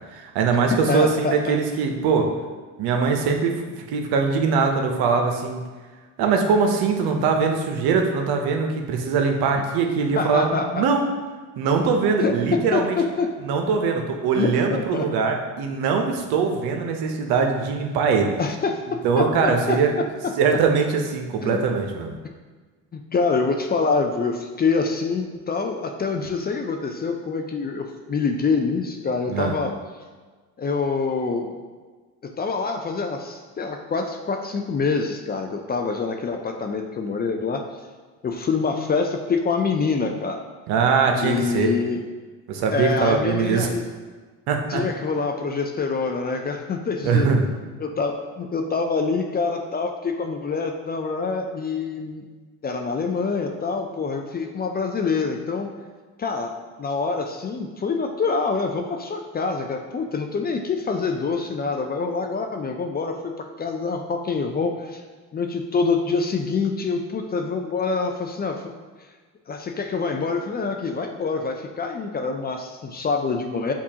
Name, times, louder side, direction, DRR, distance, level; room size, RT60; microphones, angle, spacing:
voice 1, 0.0-2.3 2.8-3.6 3.9-5.6 6.2-11.1 11.6-13.0 13.4-18.3 19.0-19.9 20.4-22.1 29.3-29.5 40.7-41.7 42.5-43.7 44.5-44.8 47.0-47.4, right 5 dB, 70° right, 3 dB, 0.7 m, -22 dB
voice 2, 0.7-1.4 10.2-10.8 12.2-12.4 12.7-13.3 14.3-15.0 18.4-18.8 19.2-19.8 20.2-20.3 21.4-21.6 22.9-29.7 30.6-31.5 32.4-37.6 38.2-40.4 41.2-42.0 42.7-43.8 44.7-47.3 47.6-52.2 52.6-55.7 56.2-56.5 56.8-65.0 65.3-68.6 69.5-73.7, left 4 dB, 25° left, 4 dB, 0.4 m, -25 dB
7.0 x 2.4 x 2.8 m, 1.4 s
supercardioid pair, 85°, 39 cm